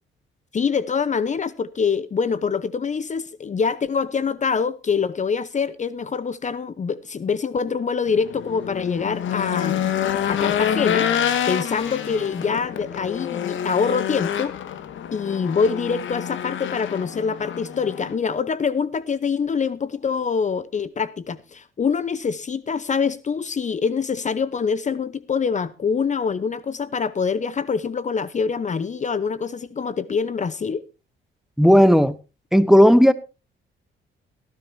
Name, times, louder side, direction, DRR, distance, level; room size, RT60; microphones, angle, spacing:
voice 1, 0.5-9.9 10.3-11.1 11.5-14.6 15.1-30.8, left 5 dB, 35° left, 0.9 m, -25 dB
Race car auto racing / Engine, 8.1-18.1, left 9 dB, 75° left, 1.8 m, -27 dB
voice 2, 31.6-32.1 32.5-33.1, equal, ahead, 1.1 m, -13 dB
17.5 x 14.0 x 2.7 m
cardioid pair, 90°, 20 cm